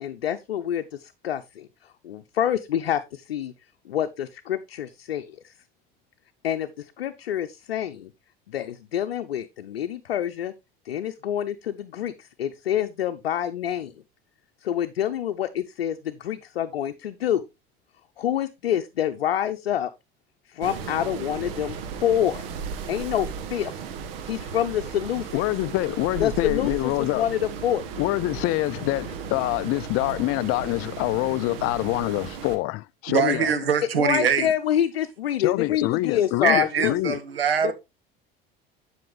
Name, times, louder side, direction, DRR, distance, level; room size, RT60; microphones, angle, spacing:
voice 1, 0.0-3.5 3.8-5.5 6.4-8.1 8.5-10.5 10.8-13.9 14.6-17.4 18.2-19.9 20.5-22.4 22.9-23.8 24.2-25.4 26.2-27.8 34.0-36.9 37.6-37.7, left 10 dB, 85° left, 0.7 m, -27 dB
sound 1, 20.6-32.6, right 6 dB, 70° right, 1.6 m, -35 dB
voice 2, 25.3-27.2 28.0-33.5 35.4-37.2, left 20 dB, 50° left, 0.4 m, -25 dB
voice 3, 33.1-34.5 36.4-37.7, right 7 dB, 85° right, 1.4 m, -23 dB
10.5 x 5.7 x 3.3 m
hypercardioid pair, 70°, 29 cm